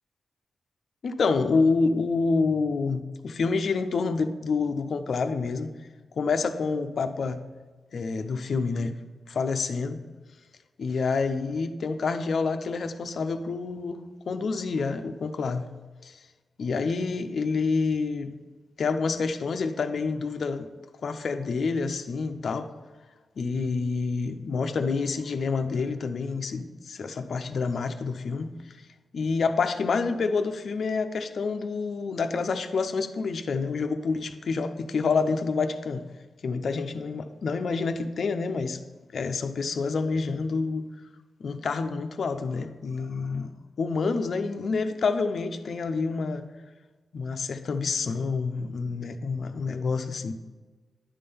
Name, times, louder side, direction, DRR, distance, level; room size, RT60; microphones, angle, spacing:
voice 1, 1.0-5.7 6.1-7.4 7.9-9.0 9.3-10.0 10.8-14.0 14.3-15.7 16.0-16.2 16.6-18.3 18.8-20.7 21.0-22.7 23.4-28.5 29.1-36.0 36.4-38.8 39.1-40.9 41.4-43.5 43.8-46.4 47.1-50.3, left 4 dB, 60° left, 8 dB, 0.6 m, -28 dB
10.0 x 3.7 x 6.8 m, 1.3 s
wide cardioid pair, 130°, 0 cm